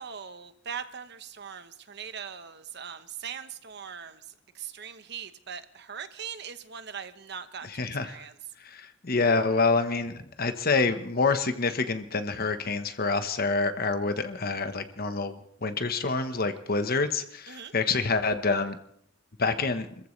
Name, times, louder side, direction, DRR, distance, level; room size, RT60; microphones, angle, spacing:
voice 1, 0.0-4.2 4.5-8.4 17.5-17.7, right 7 dB, 60° right, 10 dB, 1.1 m, -40 dB
voice 2, 7.7-8.2 8.6-18.8 19.4-19.9, left 4 dB, 50° left, 9 dB, 1.2 m, -27 dB
28.5 x 14.5 x 3.3 m, 0.67 s
head